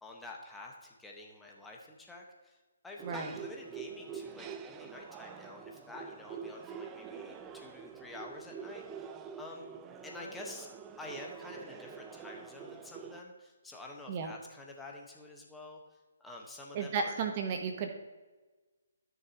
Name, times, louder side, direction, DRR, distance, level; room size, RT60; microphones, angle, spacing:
voice 1, 0.0-2.6 2.8-9.1 9.4-9.6 10.0-10.7 11.0-15.8 16.2-17.2, left 2 dB, 5° left, -1 dB, 1.3 m, -48 dB
Monks Chanting in Jade Buddha Temple Shanghai, 3.0-13.2, right 7 dB, 20° right, 0.5 m, -46 dB
voice 2, 16.7-17.9, right 5 dB, 35° right, 4 dB, 1.0 m, -33 dB
14.5 x 6.6 x 3.0 m, 1.2 s
figure-of-eight pair, 140°, 0 cm